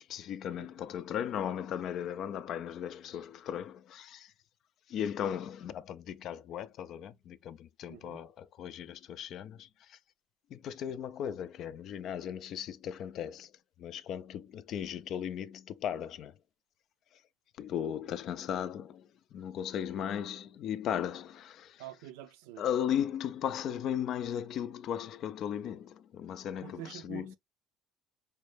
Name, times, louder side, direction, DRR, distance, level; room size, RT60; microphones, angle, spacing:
voice 1, 0.0-4.3 4.9-10.0 10.5-13.5 13.8-16.3 17.6-21.8 22.6-27.4, left 9 dB, 60° left, 0.3 m, -37 dB
voice 2, 7.9-8.2 21.8-22.6 26.6-27.4, right 12 dB, 90° right, 0.5 m, -47 dB
4.2 x 2.1 x 3.2 m
supercardioid pair, 90°, 0 cm